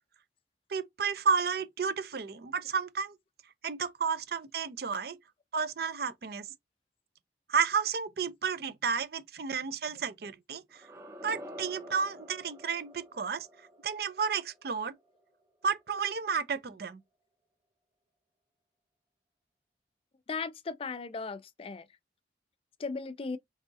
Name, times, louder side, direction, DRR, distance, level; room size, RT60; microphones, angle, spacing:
voice 1, 0.7-3.2 3.6-5.2 5.5-6.5 7.5-10.9 11.2-13.5 13.8-14.9 15.6-17.0, right 6 dB, 60° right, 0.5 m, -32 dB
sound 1, 10.7-15.6, equal, 15° right, 0.6 m, -49 dB
voice 2, 20.3-21.9 22.8-23.4, left 4 dB, 30° left, 0.3 m, -36 dB
4.0 x 3.5 x 2.6 m
head